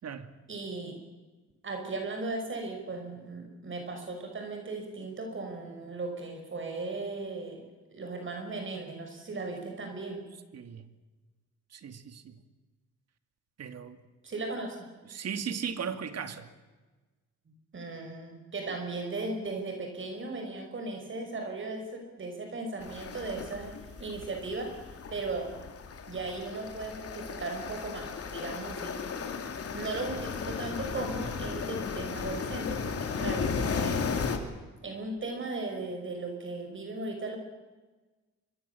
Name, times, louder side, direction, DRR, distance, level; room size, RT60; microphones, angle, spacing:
voice 1, 0.5-1.0 1.6-7.7 7.9-10.2 14.2-14.9 17.5-25.5 26.1-28.9 29.7-34.2 34.8-37.4, right 3 dB, 40° right, 4 dB, 5.8 m, -37 dB
voice 2, 10.5-10.9 11.7-12.4 13.6-14.0 15.0-16.5, right 7 dB, 55° right, 9 dB, 2.4 m, -37 dB
sound 1, 22.8-34.4, left 6 dB, 50° left, 3.2 m, -35 dB
25.0 x 23.0 x 7.2 m, 1.3 s
cardioid pair, 90°, 30 cm